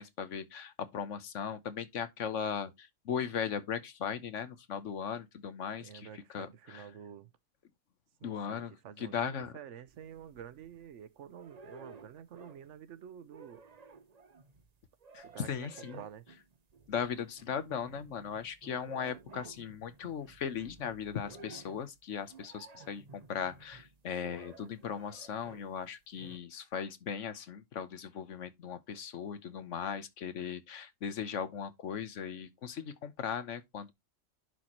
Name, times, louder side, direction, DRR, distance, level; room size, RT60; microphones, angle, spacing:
voice 1, 0.0-6.9 8.2-9.5 15.1-16.0 16.9-33.9, left 7 dB, 70° left, 1.2 m, -38 dB
voice 2, 5.8-7.3 8.2-13.6 15.2-16.2, right 9 dB, 65° right, 1.0 m, -49 dB
sound 1, 9.9-10.9 11.3-12.8 13.1-25.7 26.2-26.4, right 4 dB, 35° right, 0.7 m, -54 dB
10.5 x 4.2 x 3.0 m
omnidirectional pair, 1.3 m